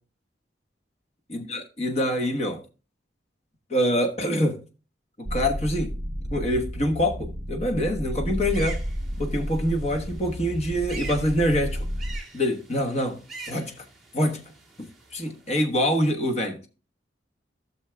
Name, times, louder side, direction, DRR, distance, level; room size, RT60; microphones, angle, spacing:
voice 1, 1.3-2.6 3.7-4.6 5.3-5.9 6.3-8.8 9.2-11.9 12.3-13.2 13.5-13.7 14.1-14.4 14.8-16.7, equal, 35° left, 1.2 m, -25 dB
sound 1, 5.3-12.2, equal, 25° right, 0.7 m, -32 dB
sound 2, 8.4-15.6, right 3 dB, ahead, 2.1 m, -44 dB
15.0 x 6.4 x 2.2 m
head